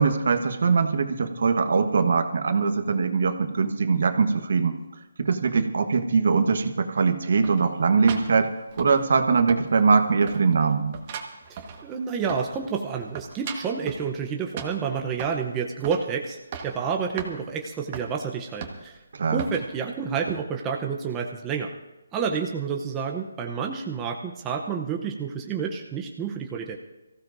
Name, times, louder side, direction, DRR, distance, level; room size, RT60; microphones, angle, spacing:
voice 1, 0.0-4.8 5.2-8.5 8.8-11.0 19.1-19.4, right 5 dB, 60° right, 7 dB, 1.3 m, -22 dB
sound 1, 7.4-9.2 9.5-10.0 10.3-12.6 12.9-14.1 14.6-15.4 15.8-16.1 16.4-16.8 17.2-17.3 17.9-18.1 18.6-19.0 19.4-19.7 20.3-20.4, right 6 dB, 30° right, 1.5 m, -37 dB
voice 2, 11.5-19.0 19.3-21.7 22.1-26.8, right 6 dB, 15° right, 1 dB, 0.7 m, -29 dB
23.5 x 15.5 x 2.6 m, 1.1 s
hypercardioid pair, 165°, 0 cm